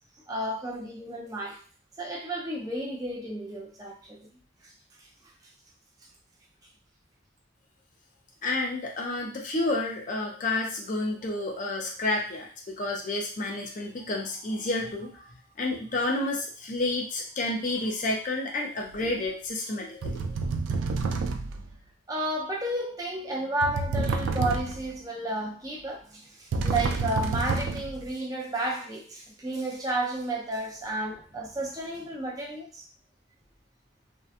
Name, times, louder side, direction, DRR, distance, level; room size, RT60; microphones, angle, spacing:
voice 1, 0.3-1.6 2.0-4.3 4.6-4.7 22.1-32.8, right 1 dB, 20° right, -2 dB, 0.5 m, -32 dB
voice 2, 8.4-20.2, left 2 dB, 40° left, 0 dB, 0.5 m, -30 dB
sound 1, 19.0-19.2 20.0-21.7 23.6-25.0 26.5-28.1, right 3 dB, 75° right, 0.3 m, -29 dB
2.7 x 2.1 x 2.4 m, 0.40 s
head